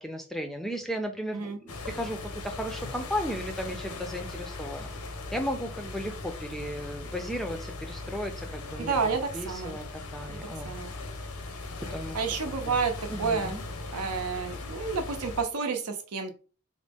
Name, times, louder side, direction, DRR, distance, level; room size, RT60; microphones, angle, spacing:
voice 1, 0.0-4.9 5.3-9.0 9.3-10.7 11.9-12.2 12.6-12.8 13.1-13.6, equal, ahead, 5 dB, 0.4 m, -35 dB
sound 1, 1.7-15.4, left 3 dB, 85° left, 0.7 m, -39 dB
voice 2, 8.8-9.8 10.3-10.4 10.6-10.9 12.1-12.9 13.2-13.5 13.9-16.3, right 5 dB, 90° right, 5 dB, 0.7 m, -30 dB
3.9 x 2.0 x 3.4 m, 0.36 s
head